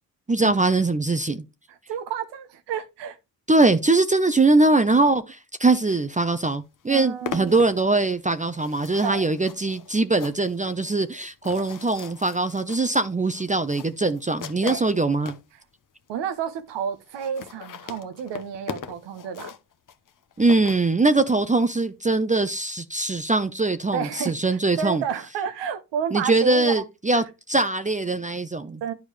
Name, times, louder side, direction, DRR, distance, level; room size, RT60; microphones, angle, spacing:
voice 1, 0.3-1.4 3.5-15.4 20.4-25.0 26.1-28.8, right 3 dB, 20° right, 0.7 m, -22 dB
voice 2, 1.7-3.2 6.9-7.5 9.0-9.2 14.6-14.9 16.1-19.5 23.9-26.8 27.1-27.2 28.8-28.9, right 7 dB, 90° right, 1.1 m, -31 dB
sound 1, 6.3-6.4 6.6-15.5 16.1-16.2 16.4-16.5 16.7-16.8 17.0-21.4, left 8 dB, 50° left, 1.0 m, -40 dB
10.5 x 4.8 x 3.3 m
supercardioid pair, 60°, 41 cm